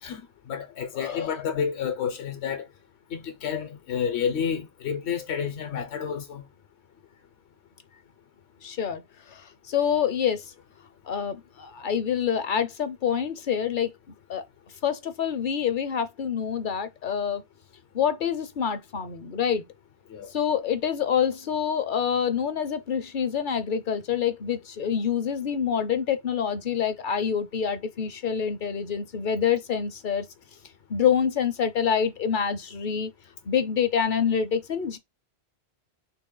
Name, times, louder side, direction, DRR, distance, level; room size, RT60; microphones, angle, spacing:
voice 1, 0.0-2.7 3.1-6.4 20.1-20.3, left 7 dB, 80° left, 1.0 m, -30 dB
voice 2, 0.9-1.3 8.6-9.0 9.3-9.4 9.7-10.4 11.1-13.9 14.3-14.4 14.8-17.4 17.9-19.6 20.3-30.3 30.9-33.1 33.5-35.0, left 7 dB, 55° left, 0.7 m, -26 dB
3.9 x 2.2 x 3.7 m
omnidirectional pair, 1.1 m